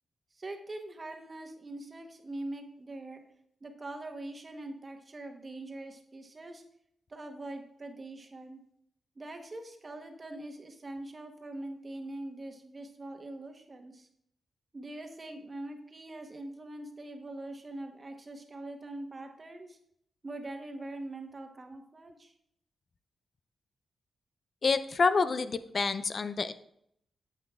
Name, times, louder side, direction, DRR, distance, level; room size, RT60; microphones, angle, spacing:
voice 1, 0.3-3.2 3.6-6.6 7.1-8.6 9.2-14.1 14.7-19.8 20.2-22.3, right 2 dB, 30° right, 4 dB, 1.1 m, -43 dB
voice 2, 24.6-26.5, left 4 dB, 45° left, 12 dB, 0.5 m, -28 dB
9.0 x 7.9 x 2.4 m, 0.72 s
cardioid pair, 105°, 0 cm